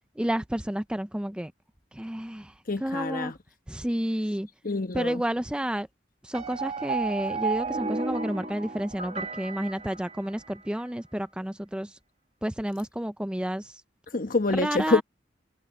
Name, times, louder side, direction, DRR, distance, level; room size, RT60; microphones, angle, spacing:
voice 1, 0.2-1.5 1.9-2.5 2.8-3.3 3.7-4.5 4.9-5.9 6.2-12.0 12.4-13.7 14.5-15.0, right 1 dB, 5° right, 0.4 m, -30 dB
voice 2, 2.7-3.4 4.6-5.2 14.1-15.0, left 3 dB, 50° left, 1.2 m, -26 dB
sound 1, 6.3-10.6, right 4 dB, 35° right, 2.0 m, -33 dB
head